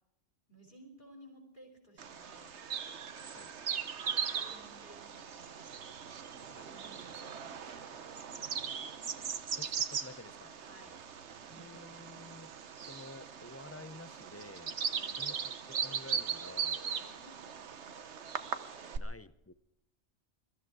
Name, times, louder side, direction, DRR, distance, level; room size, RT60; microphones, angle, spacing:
voice 1, 0.5-2.6 4.0-5.7 6.7-8.9 10.6-10.9 11.4-11.8 14.9-15.2 16.9-17.5 18.7-19.0, right 1 dB, 45° left, -1 dB, 4.8 m, -58 dB
Bird vocalization bird call bird song, 2.0-19.0, right 7 dB, 80° right, 1.3 m, -39 dB
voice 2, 6.4-6.8 7.1-7.2 9.6-10.7 11.5-12.5 12.8-14.8 15.2-16.8 18.2-18.3 19.0-19.5, left 2 dB, 20° left, 14 dB, 0.5 m, -51 dB
22.0 x 14.0 x 4.7 m, 0.84 s
omnidirectional pair, 1.2 m